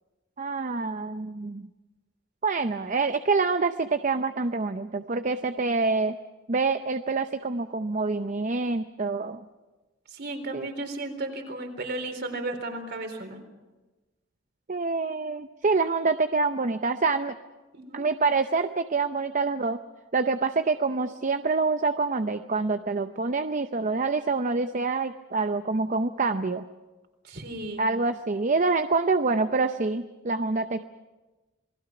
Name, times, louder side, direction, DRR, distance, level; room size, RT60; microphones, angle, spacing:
voice 1, 0.4-1.7 2.4-6.2 6.5-9.4 10.5-10.7 14.7-17.3 17.9-19.8 20.1-26.7 27.8-30.8, right 4 dB, 40° right, 9 dB, 0.7 m, -26 dB
voice 2, 10.1-13.4 17.7-18.1 27.2-27.8, right 2 dB, 55° right, 5 dB, 3.9 m, -34 dB
28.0 x 21.0 x 6.0 m, 1.2 s
head